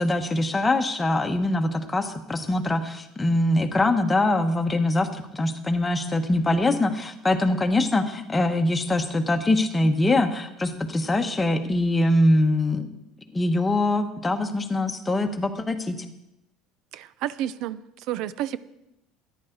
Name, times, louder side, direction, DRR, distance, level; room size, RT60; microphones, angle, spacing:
voice 1, 0.0-12.9 13.3-16.0, left 2 dB, 15° left, 5 dB, 1.1 m, -23 dB
voice 2, 16.9-18.6, right 12 dB, 65° right, 17 dB, 0.5 m, -31 dB
14.0 x 10.5 x 3.9 m, 0.87 s
supercardioid pair, 125°, 0 cm